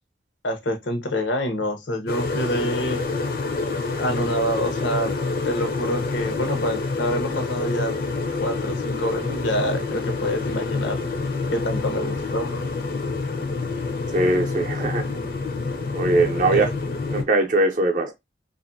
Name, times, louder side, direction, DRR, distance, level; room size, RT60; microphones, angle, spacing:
voice 1, 0.4-3.0 4.0-5.1 5.4-8.0 8.4-11.0 11.5-12.6 16.5-16.7, equal, 85° left, 0.7 m, -26 dB
sound 1, 2.1-17.2, left 3 dB, 55° left, 0.5 m, -27 dB
voice 2, 14.1-15.1 15.9-16.7 17.1-18.1, right 2 dB, 45° right, 0.6 m, -21 dB
2.6 x 2.5 x 2.5 m
head